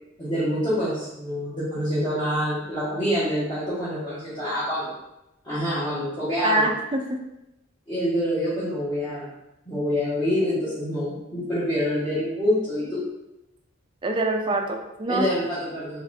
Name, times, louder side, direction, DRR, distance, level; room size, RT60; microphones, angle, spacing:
voice 1, 0.2-4.9 5.4-6.7 7.9-9.3 9.6-13.0 15.1-16.0, equal, 20° left, -15 dB, 1.3 m, -26 dB
voice 2, 6.4-7.2 14.0-15.3, right 2 dB, 25° right, 3 dB, 0.3 m, -24 dB
4.0 x 3.0 x 2.7 m, 0.91 s
head